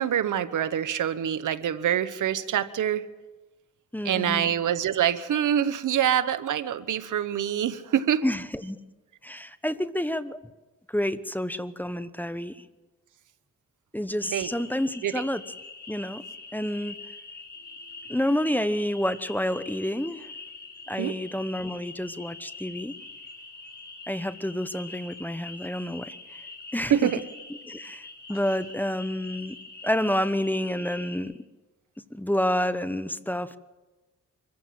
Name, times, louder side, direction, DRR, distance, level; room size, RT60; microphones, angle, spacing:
voice 1, 0.0-3.0 4.0-8.2 14.3-14.5 15.0-15.1 21.0-21.2 26.9-27.2, right 10 dB, 80° right, 13 dB, 1.1 m, -25 dB
voice 2, 3.9-4.5 8.2-8.8 9.2-10.4 10.9-12.6 13.9-15.4 15.9-16.2 16.5-17.0 18.1-20.3 20.9-22.9 24.1-26.4 26.7-27.1 27.7-29.6 29.8-31.3 32.1-33.6, left 1 dB, 5° left, 13 dB, 1.0 m, -29 dB
sound 1, 14.2-31.2, left 3 dB, 35° left, 5.3 m, -44 dB
25.0 x 15.0 x 7.7 m, 1.2 s
cardioid pair, 75°, 30 cm